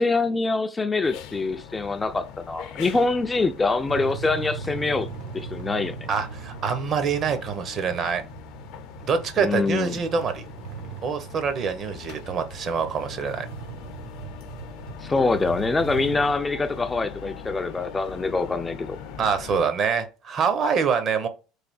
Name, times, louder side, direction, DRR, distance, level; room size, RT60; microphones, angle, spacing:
voice 1, 0.0-5.1 5.3-6.0 9.4-10.0 15.0-19.0, left 3 dB, 15° left, 0.3 m, -24 dB
sound 1, 1.0-19.6, left 8 dB, 65° left, 0.5 m, -42 dB
sound 2, 3.9-16.3, right 7 dB, 70° right, 0.8 m, -40 dB
voice 2, 6.1-8.2 9.0-10.5 11.0-13.5 19.2-21.3, right 6 dB, 40° right, 0.7 m, -25 dB
3.2 x 2.6 x 4.1 m
supercardioid pair, 125°, 0 cm